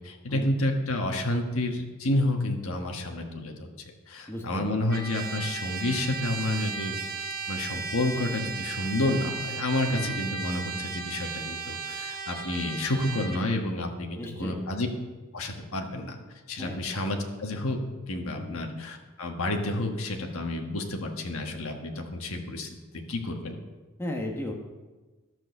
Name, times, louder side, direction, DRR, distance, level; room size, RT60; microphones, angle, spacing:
voice 1, 0.0-3.7 4.1-14.9 15.3-16.2 16.5-17.8 18.1-22.7 23.1-23.6, left 1 dB, 75° left, 3 dB, 1.3 m, -30 dB
voice 2, 4.3-4.7 9.9-10.3 14.2-14.6 16.6-16.8 18.3-18.6 24.0-24.5, left 1 dB, 10° left, 0 dB, 1.3 m, -35 dB
Trumpet, 4.9-13.4, right 5 dB, 45° right, 1.2 m, -35 dB
12.0 x 6.3 x 6.7 m, 1.2 s
head